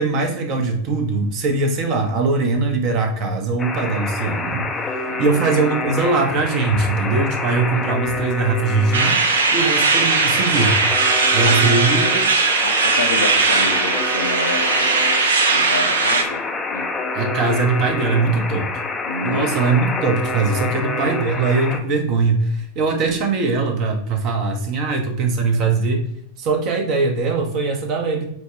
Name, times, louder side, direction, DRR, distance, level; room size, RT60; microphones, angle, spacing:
voice 1, 0.0-4.6 4.9-9.1 9.5-10.8 11.3-12.0 17.1-18.7 19.2-26.1 26.4-28.3, right 3 dB, 40° right, 4 dB, 0.8 m, -21 dB
Alarm, 3.6-21.8, left 3 dB, 15° left, 0.4 m, -27 dB
voice 2, 5.0-5.4 11.4-11.7 12.6-15.0 15.5-16.5 16.7-16.9 19.0-19.5, left 2 dB, 75° left, 5 dB, 0.5 m, -28 dB
sound 1, 8.9-16.2, right 4 dB, 65° right, 0.5 m, -18 dB
5.3 x 2.1 x 3.0 m, 0.70 s
figure-of-eight pair, 90°, 0 cm